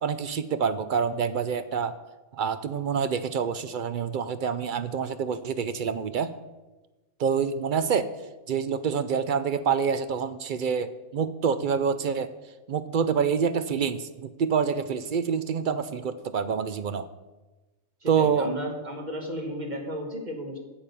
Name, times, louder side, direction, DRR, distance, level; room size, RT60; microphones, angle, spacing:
voice 1, 0.0-2.0 2.3-6.3 7.2-8.1 8.5-12.3 12.7-17.1 18.1-18.5, right 6 dB, 55° right, 12 dB, 0.5 m, -27 dB
voice 2, 18.0-20.6, equal, 35° right, 3 dB, 1.5 m, -34 dB
8.8 x 7.3 x 6.8 m, 1.1 s
omnidirectional pair, 1.3 m